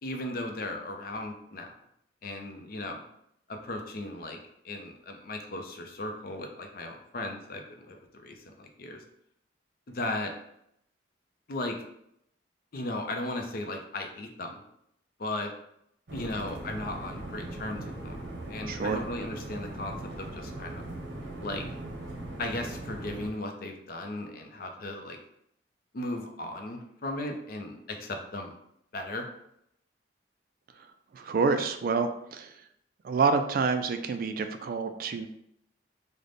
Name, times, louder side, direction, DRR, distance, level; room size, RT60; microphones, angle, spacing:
voice 1, 0.0-1.7 2.2-3.0 3.5-4.4 4.6-9.0 9.9-10.3 11.5-11.8 12.7-14.6 15.2-15.5 16.1-18.2 18.5-20.8 21.4-21.7 22.4-25.2 25.9-28.6 28.9-29.3, left 2 dB, 55° left, 3 dB, 0.5 m, -36 dB
sound 1, 16.1-23.3, right 1 dB, 75° right, 0.7 m, -39 dB
voice 2, 18.7-19.0 31.1-32.5 33.0-35.3, right 4 dB, 50° right, 8 dB, 0.3 m, -28 dB
3.8 x 2.1 x 3.3 m, 0.76 s
head